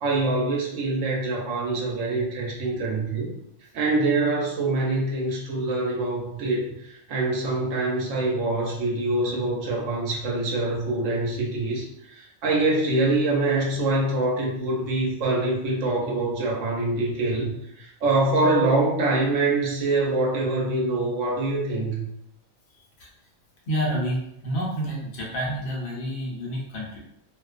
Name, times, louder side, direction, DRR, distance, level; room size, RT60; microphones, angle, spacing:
voice 1, 0.0-3.3 3.7-11.8 12.1-17.5 17.8-22.0, right 2 dB, 75° right, -2 dB, 1.0 m, -24 dB
voice 2, 23.7-27.0, equal, 60° left, -3 dB, 0.8 m, -29 dB
2.4 x 2.2 x 2.3 m, 0.79 s
omnidirectional pair, 1.4 m